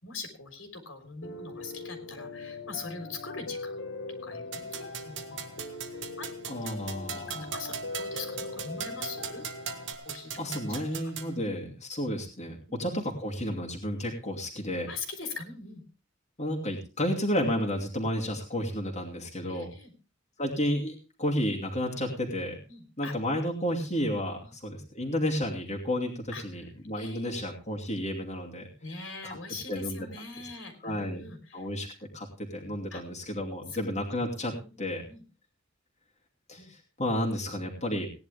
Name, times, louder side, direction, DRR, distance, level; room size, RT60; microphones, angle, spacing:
voice 1, 0.0-3.8 4.2-5.4 6.2-6.3 6.6-6.8 7.1-9.7 10.0-10.4 10.7-10.8 11.3-11.4 14.9-15.8 19.5-19.9 22.7-23.1 24.4-24.5 26.3-26.4 26.9-27.5 28.8-31.7 32.9-33.0 33.7-33.8 34.6-34.7 35.1-35.2 36.6-36.7, left 4 dB, 80° left, 5 dB, 3.7 m, -42 dB
Piano, 1.2-9.9, left 3 dB, 60° left, 1.6 m, -41 dB
sound 1, 4.5-11.4, right 6 dB, 65° right, 1.6 m, -40 dB
voice 2, 6.5-7.5 10.4-14.9 16.4-19.7 20.4-22.6 23.0-28.7 29.2-29.4 29.7-30.1 30.8-31.2 31.5-35.0 36.5-38.1, equal, 35° left, -1 dB, 2.6 m, -32 dB
17.5 x 10.5 x 3.4 m, 0.33 s
head